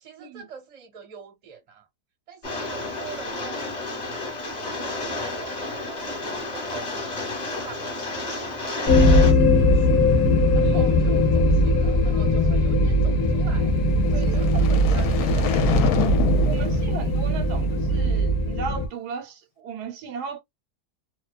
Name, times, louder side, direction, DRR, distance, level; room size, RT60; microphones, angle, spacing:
voice 1, 0.0-1.8 2.3-7.2 7.6-10.0 10.5-13.8 14.1-16.1, right 7 dB, 35° right, 0.6 m, -43 dB
Rain, 2.4-9.3, left 2 dB, 30° left, 1.0 m, -31 dB
sound 1, 8.9-18.9, left 1 dB, 55° left, 0.8 m, -20 dB
voice 2, 10.6-11.1 14.2-14.4 16.5-20.4, right 6 dB, 85° right, 1.2 m, -36 dB
sound 2, 13.9-18.1, left 7 dB, 70° left, 1.0 m, -27 dB
2.6 x 2.2 x 2.4 m
omnidirectional pair, 1.7 m